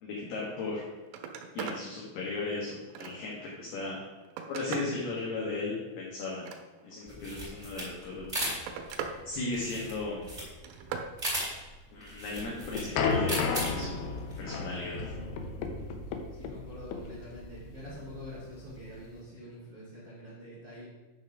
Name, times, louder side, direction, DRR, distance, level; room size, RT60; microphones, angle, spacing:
voice 1, 0.0-0.8 1.5-4.0 4.5-6.4 6.8-8.5 9.3-10.3 11.9-14.1 14.4-15.1, left 3 dB, 65° left, -4 dB, 3.0 m, -36 dB
Telephone, 0.6-0.7 1.0-1.9 2.3-3.4 4.0-5.0 6.2-7.1 8.0-9.2 9.5-10.0 10.4-11.1 13.6-13.9 15.3-15.5, right 7 dB, 85° right, 3.2 m, -40 dB
sound 1, 7.1-14.4, equal, 10° right, 2.2 m, -37 dB
sound 2, 12.3-19.2, left 5 dB, 85° left, 2.3 m, -33 dB
voice 2, 16.3-20.9, left 1 dB, 40° right, -9 dB, 1.8 m, -45 dB
9.9 x 4.3 x 6.0 m, 1.2 s
omnidirectional pair, 5.6 m